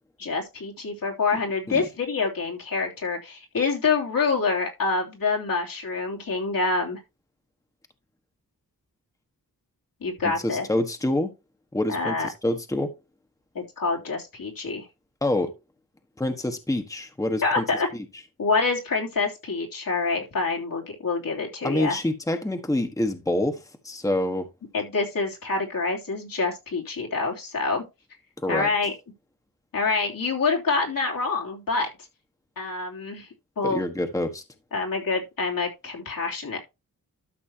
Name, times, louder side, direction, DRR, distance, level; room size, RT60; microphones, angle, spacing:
voice 1, 0.2-7.0 10.0-10.7 11.9-12.3 13.5-14.9 17.4-17.9 18.4-22.0 24.7-27.8 28.5-28.9 29.7-31.9 32.6-33.3 33.6-33.8 34.7-36.6, left 4 dB, 75° left, 3.2 m, -26 dB
voice 2, 10.4-11.3 11.7-12.9 15.2-15.5 16.2-17.6 21.6-24.5 28.4-28.7 33.6-34.4, left 1 dB, 10° left, 1.3 m, -26 dB
12.5 x 6.1 x 2.9 m
wide cardioid pair, 90°, 34 cm